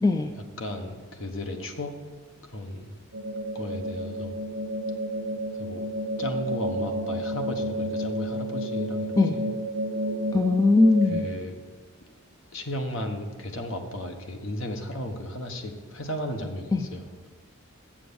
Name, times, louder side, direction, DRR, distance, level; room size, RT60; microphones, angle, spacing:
voice 1, 0.0-0.3 9.2-9.4 10.3-11.3 16.7-16.9, left 2 dB, 15° left, 6 dB, 0.3 m, -20 dB
voice 2, 0.6-1.9 2.4-3.0 3.5-4.4 5.5-5.8 6.2-9.4 11.0-11.6 12.5-17.1, left 1 dB, 65° left, 4 dB, 1.1 m, -35 dB
sound 1, 3.1-11.3, right 1 dB, 80° right, 1.0 m, -31 dB
7.6 x 7.0 x 6.9 m, 1.4 s
head